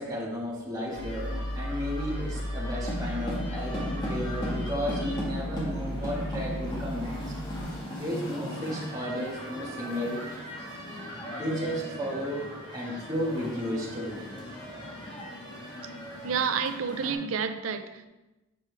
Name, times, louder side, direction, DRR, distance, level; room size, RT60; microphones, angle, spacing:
voice 1, 0.0-7.3 8.0-10.2 11.3-14.3, equal, 20° right, 1.8 m, -33 dB
sound 1, 0.9-17.1, equal, 20° left, 1.8 m, -38 dB
sound 2, 1.0-7.6, equal, 50° left, 1.1 m, -35 dB
voice 2, 16.2-18.1, right 6 dB, 70° right, 0.5 m, -29 dB
7.8 x 5.8 x 3.5 m
head